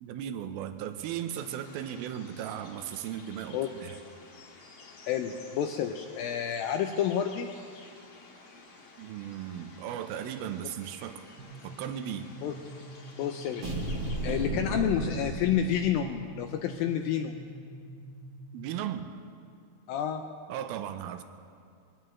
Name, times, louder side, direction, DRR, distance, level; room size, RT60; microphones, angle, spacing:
voice 1, 0.0-4.0 9.0-11.2 11.6-12.3 18.5-19.1 20.5-21.2, right 10 dB, 80° right, 9 dB, 2.4 m, -36 dB
sound 1, 1.3-14.5, left 3 dB, 55° left, 1.5 m, -52 dB
voice 2, 5.1-7.5 12.4-12.6 13.2-13.7 14.2-17.4 19.9-20.2, left 9 dB, 85° left, 5 dB, 2.0 m, -29 dB
sound 2, 11.4-18.9, right 1 dB, 65° right, 2.3 m, -47 dB
sound 3, 13.6-16.4, right 2 dB, 45° right, 1.7 m, -34 dB
23.5 x 17.5 x 3.1 m, 2.3 s
omnidirectional pair, 4.8 m